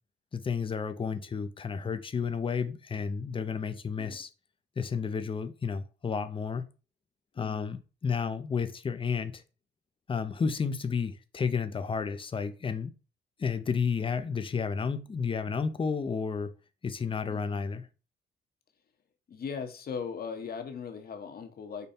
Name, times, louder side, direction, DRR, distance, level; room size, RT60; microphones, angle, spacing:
voice 1, 0.3-4.3 4.8-6.7 7.4-9.4 10.1-12.9 13.4-16.5 16.8-17.9, left 5 dB, 25° left, 0.6 m, -31 dB
voice 2, 7.3-7.8 17.3-17.7 19.3-21.9, left 6 dB, 50° left, 0.9 m, -39 dB
5.2 x 2.2 x 4.2 m
cardioid pair, 90°, 20 cm